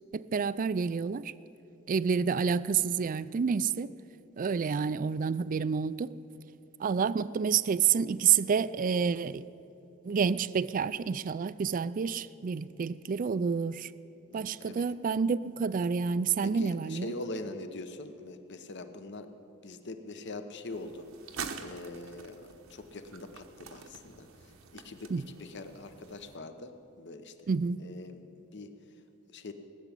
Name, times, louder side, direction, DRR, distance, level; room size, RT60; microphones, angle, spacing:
voice 1, 0.1-1.2 1.9-3.9 4.4-6.1 6.8-9.4 10.1-13.9 14.3-17.1 25.1-25.2 27.5-27.8, right 6 dB, 40° right, 0.3 m, -29 dB
voice 2, 2.1-2.5 14.3-14.8 16.4-19.3 19.6-21.1 21.6-27.5 27.8-28.7 29.3-29.5, left 2 dB, 60° left, 1.0 m, -43 dB
sound 1, 20.7-26.4, right 6 dB, 80° right, 1.0 m, -46 dB
19.0 x 7.1 x 9.9 m
head